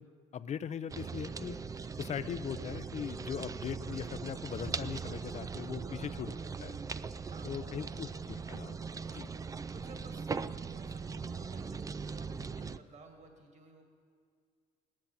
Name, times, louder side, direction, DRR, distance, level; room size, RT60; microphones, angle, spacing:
voice 1, 0.0-1.6 2.0-6.3 6.6-6.8 7.4-8.8 9.1-9.3, left 8 dB, 40° left, 14 dB, 0.6 m, -40 dB
sound 1, 0.9-12.8, right 5 dB, 20° right, 0.4 m, -40 dB
voice 2, 5.8-6.2 7.3-8.0 9.7-10.3 10.6-13.8, right 3 dB, 45° right, 3 dB, 2.1 m, -55 dB
17.5 x 10.5 x 7.4 m, 2.1 s
cardioid pair, 110°, 17 cm